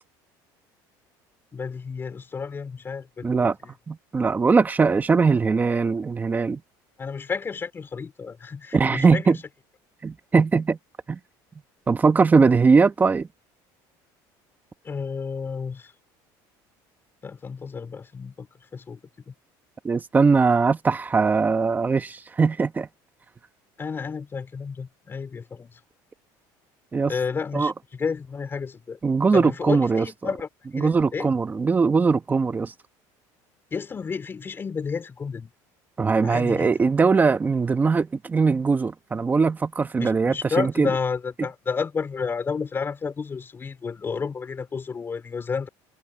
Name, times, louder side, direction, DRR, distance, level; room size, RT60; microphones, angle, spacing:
voice 1, 1.5-3.7 7.0-9.4 14.8-15.9 17.2-19.0 19.3-19.4 23.8-25.8 27.1-29.0 29.3-31.3 33.7-35.5 36.2-36.7 40.0-45.7, left 5 dB, 25° left, 5.3 m, -31 dB
voice 2, 3.2-3.6 3.9-6.6 8.7-9.4 10.0-10.8 11.1-11.2 11.9-13.3 19.8-22.9 26.9-27.1 27.5-27.7 29.0-30.0 30.8-32.7 36.0-40.9, right 4 dB, 20° right, 1.5 m, -20 dB
cardioid pair, 125°, 9 cm